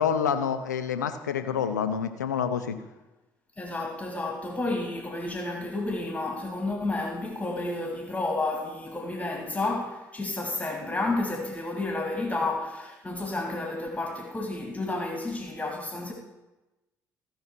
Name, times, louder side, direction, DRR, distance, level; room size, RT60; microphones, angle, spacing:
voice 1, 0.0-2.8, left 7 dB, 85° left, 0.6 m, -27 dB
voice 2, 3.6-16.1, left 2 dB, 15° left, 2.0 m, -31 dB
15.5 x 5.6 x 4.4 m
figure-of-eight pair, 50°, 9 cm